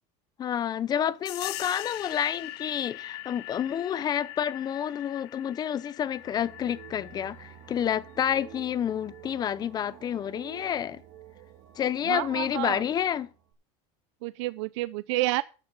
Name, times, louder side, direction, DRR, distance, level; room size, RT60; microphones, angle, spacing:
voice 1, 0.4-11.0 11.8-13.3, left 9 dB, 25° left, 0.6 m, -29 dB
sound 1, 1.3-9.5, left 17 dB, 80° left, 0.8 m, -42 dB
sound 2, 6.0-13.5, right 10 dB, 55° right, 2.5 m, -50 dB
voice 2, 12.0-12.8 14.2-15.4, right 19 dB, 80° right, 0.5 m, -29 dB
13.0 x 6.7 x 5.5 m
cardioid pair, 145°, 15 cm